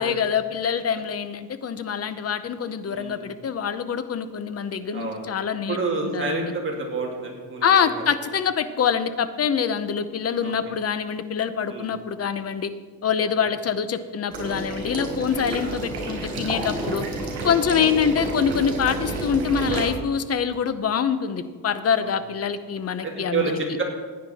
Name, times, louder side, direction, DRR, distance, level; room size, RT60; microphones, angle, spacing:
voice 1, 0.0-5.8 6.1-6.5 7.6-12.7 13.0-17.0 17.4-23.4, left 7 dB, 35° left, 12 dB, 0.7 m, -25 dB
voice 2, 2.9-3.3 4.9-5.3 5.7-8.2 10.4-10.5 11.7-11.9 13.4-13.5 15.6-15.8 17.8-17.9 22.0-22.1 23.0-23.8, right 3 dB, 30° right, -1 dB, 2.2 m, -29 dB
Water / Liquid, 14.3-19.8, right 2 dB, 65° right, 4.5 m, -30 dB
15.5 x 9.7 x 4.2 m, 1.5 s
cardioid pair, 155°, 43 cm